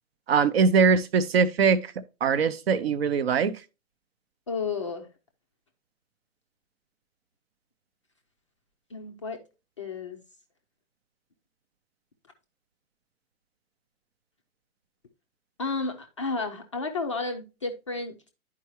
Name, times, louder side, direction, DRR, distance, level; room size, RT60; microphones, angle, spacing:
voice 1, 0.3-1.9 2.2-3.6, right 5 dB, 45° right, 0.5 m, -22 dB
voice 2, 4.5-5.1 8.9-9.4 9.8-10.2 15.6-18.3, left 4 dB, 25° left, 0.4 m, -32 dB
10.5 x 4.7 x 2.9 m
figure-of-eight pair, 125°, 43 cm